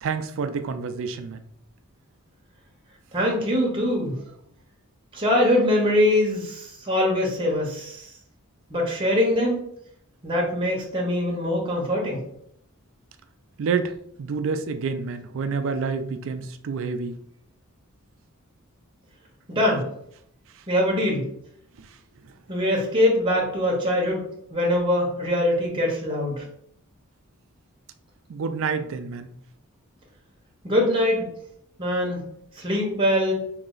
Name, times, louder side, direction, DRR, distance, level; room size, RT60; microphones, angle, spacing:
voice 1, 0.0-1.4 13.6-13.9 14.2-17.1 28.3-29.3, right 5 dB, 60° right, 9 dB, 0.4 m, -28 dB
voice 2, 3.1-4.2 5.1-8.1 8.7-9.6 10.2-12.2 19.5-19.8 20.7-21.3 22.5-24.2 24.5-26.4 30.6-31.3 31.8-32.2 32.6-33.3, left 1 dB, 25° right, -1 dB, 0.9 m, -23 dB
3.2 x 2.9 x 3.8 m, 0.72 s
head